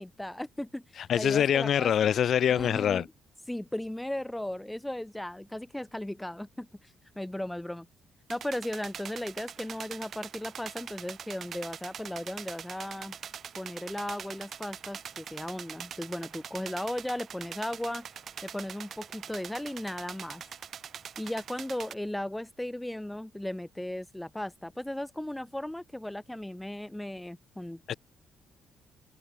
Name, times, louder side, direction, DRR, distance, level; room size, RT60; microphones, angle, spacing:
voice 1, 0.0-0.8 1.2-1.9 2.5-3.1 3.5-6.7 7.1-7.9 8.3-13.1 13.5-18.0 18.4-20.4 21.2-28.0, left 1 dB, 5° left, 4.9 m, -36 dB
voice 2, 1.0-3.1 27.9-28.0, left 9 dB, 55° left, 1.0 m, -25 dB
sound 1, 8.3-21.9, right 8 dB, 45° right, 1.9 m, -43 dB
open air
cardioid pair, 140°, 0 cm